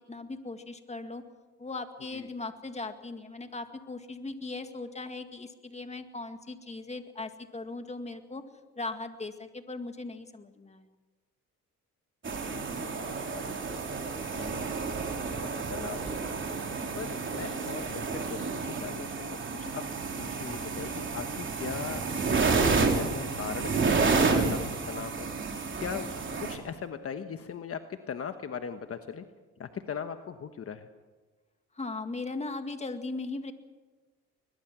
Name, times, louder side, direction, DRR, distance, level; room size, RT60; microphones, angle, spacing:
voice 1, 0.1-1.2 1.6-8.4 8.8-10.9 31.7-33.5, left 3 dB, 20° left, 7 dB, 1.9 m, -38 dB
sound 1, 12.2-26.6, right 4 dB, 40° right, 3.4 m, -30 dB
voice 2, 12.3-13.5 14.3-14.7 15.2-16.3 17.0-19.8 20.2-22.0 22.6-24.6 24.9-25.3 25.8-29.2 29.6-30.9, left 7 dB, 50° left, 8 dB, 1.2 m, -39 dB
22.0 x 21.0 x 6.1 m, 1.3 s
cardioid pair, 90°, 30 cm